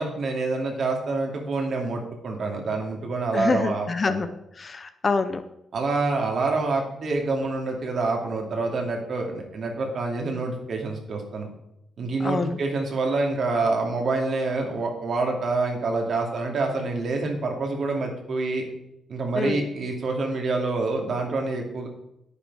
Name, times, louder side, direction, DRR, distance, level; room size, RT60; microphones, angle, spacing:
voice 1, 0.0-4.2 5.7-11.5 12.0-18.6 19.1-21.9, right 3 dB, 45° right, 2 dB, 2.5 m, -27 dB
voice 2, 3.3-5.4 12.2-12.6 19.3-19.6, left 4 dB, 25° left, 10 dB, 0.6 m, -26 dB
10.5 x 9.8 x 4.8 m, 0.83 s
wide cardioid pair, 175°, 0 cm